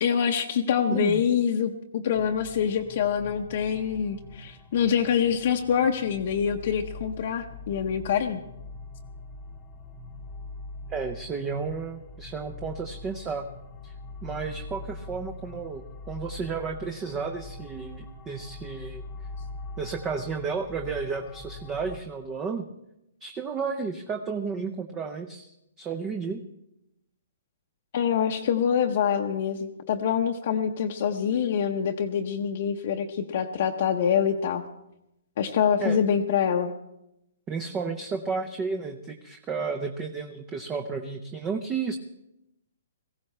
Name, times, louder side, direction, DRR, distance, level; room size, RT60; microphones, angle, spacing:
voice 1, 0.0-8.4 27.9-34.6 35.4-36.7, left 8 dB, 50° left, 2 dB, 0.8 m, -25 dB
voice 2, 0.9-1.2 10.9-13.5 13.8-13.9 14.2-19.1 19.8-22.7 23.2-26.4 35.8-36.0 37.5-42.0, right 5 dB, 15° right, 6 dB, 0.6 m, -32 dB
sound 1, 2.1-22.0, left 2 dB, 15° left, 1.0 m, -43 dB
18.5 x 15.5 x 3.3 m, 0.86 s
hypercardioid pair, 160°, 0 cm